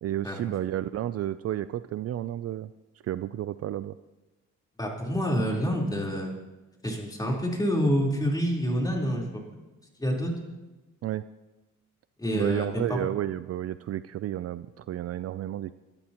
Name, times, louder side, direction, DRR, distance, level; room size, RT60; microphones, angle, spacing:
voice 1, 0.0-2.7 3.0-3.9 11.0-11.2 12.3-15.7, right 12 dB, 55° right, 14 dB, 0.4 m, -31 dB
voice 2, 4.8-6.3 6.8-9.2 10.0-10.3 12.2-13.1, equal, 15° left, -2 dB, 3.9 m, -27 dB
22.5 x 13.0 x 3.0 m, 1.1 s
cardioid pair, 90°, 30 cm